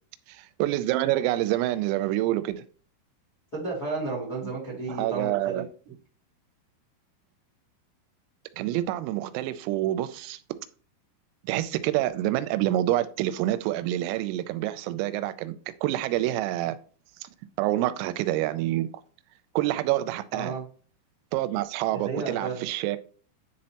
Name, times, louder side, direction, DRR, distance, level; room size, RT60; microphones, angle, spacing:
voice 1, 0.3-2.6 4.4-4.5 4.9-5.7 8.6-10.4 11.4-15.5 15.8-16.8 17.6-18.9 19.6-20.6 21.3-23.0, right 14 dB, 90° right, 3.2 m, -27 dB
voice 2, 3.5-5.6 20.3-20.6 21.9-22.6, right 3 dB, 40° left, 1.3 m, -32 dB
10.0 x 4.3 x 2.8 m
omnidirectional pair, 5.9 m